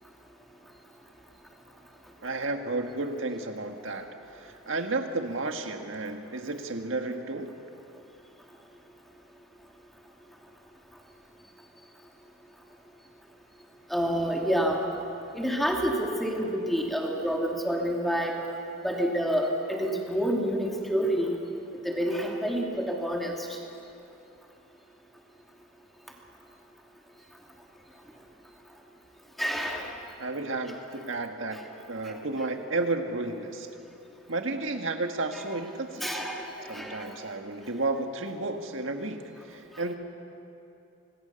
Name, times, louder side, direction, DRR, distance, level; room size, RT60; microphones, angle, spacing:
voice 1, 2.2-7.5 30.2-33.7 34.3-36.3 36.7-39.2 39.5-39.9, right 2 dB, 70° right, 5 dB, 1.7 m, -32 dB
voice 2, 13.9-14.8 15.3-18.4 18.8-21.4 21.8-23.5 29.4-29.9 32.0-32.2 36.0-37.1, equal, ahead, -1 dB, 2.5 m, -28 dB
26.5 x 19.5 x 7.0 m, 2.8 s
head